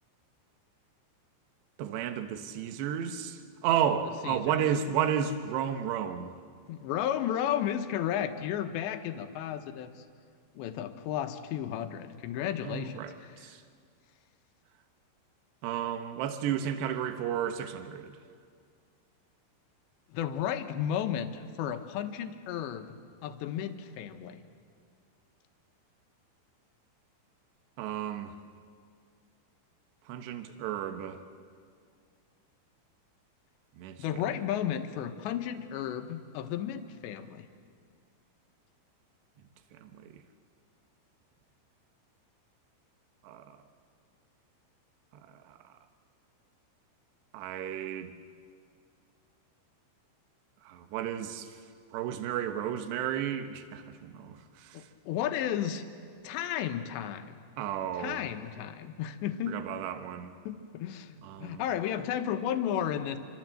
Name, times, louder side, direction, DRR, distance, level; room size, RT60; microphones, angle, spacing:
voice 1, 1.8-6.3 12.6-13.6 15.6-18.1 27.8-28.3 30.1-31.2 33.8-34.0 39.7-40.2 43.2-43.5 45.5-45.6 47.3-48.1 50.6-51.5 51.9-54.8 57.6-58.3 59.5-60.3 61.2-61.6, right 9 dB, 70° right, 8 dB, 3.1 m, -33 dB
voice 2, 4.2-4.5 4.8-4.9 6.7-9.9 10.6-13.4 20.1-23.0 23.2-24.4 34.0-37.5 54.7-55.8 56.2-57.4 58.0-59.6 60.5-63.2, left 10 dB, 75° left, 8 dB, 3.2 m, -33 dB
28.0 x 25.0 x 7.7 m, 2.1 s
omnidirectional pair, 5.5 m